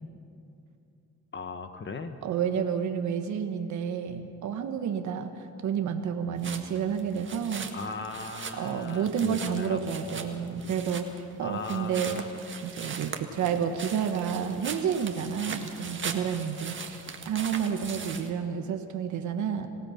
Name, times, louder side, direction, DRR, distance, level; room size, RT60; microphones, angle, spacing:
voice 1, 1.3-2.2 7.7-10.4 11.4-12.3, left 4 dB, 40° left, 8 dB, 1.3 m, -38 dB
voice 2, 2.2-7.7 8.5-12.2 12.6-19.7, right 7 dB, 75° right, 6 dB, 1.4 m, -30 dB
sound 1, 6.4-18.3, right 5 dB, 40° right, 1.8 m, -40 dB
27.5 x 16.5 x 5.8 m, 2.6 s
cardioid pair, 90°, 30 cm